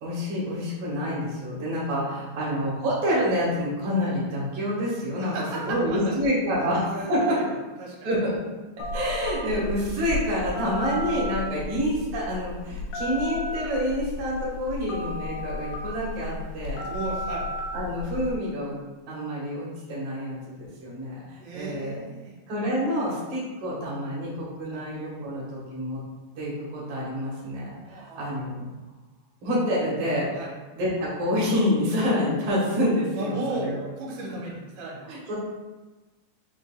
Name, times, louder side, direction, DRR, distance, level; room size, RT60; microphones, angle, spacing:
voice 1, 0.0-5.3 5.6-7.4 8.0-8.3 8.9-16.9 17.7-18.8 19.1-20.5 20.8-22.0 22.5-26.0 26.4-28.7 29.4-30.3 30.7-33.4 33.6-33.8 35.1-35.3, equal, 55° right, -6 dB, 1.7 m, -27 dB
voice 2, 2.2-2.6 5.2-6.2 6.9-8.1 16.8-17.5 21.4-22.4 24.7-24.9 27.9-28.4 30.3-30.5 33.2-35.1, right 2 dB, 75° right, -3 dB, 2.5 m, -35 dB
Telephone, 8.8-18.4, left 2 dB, 85° left, 2.6 m, -33 dB
5.7 x 3.8 x 2.2 m, 1.2 s
omnidirectional pair, 4.4 m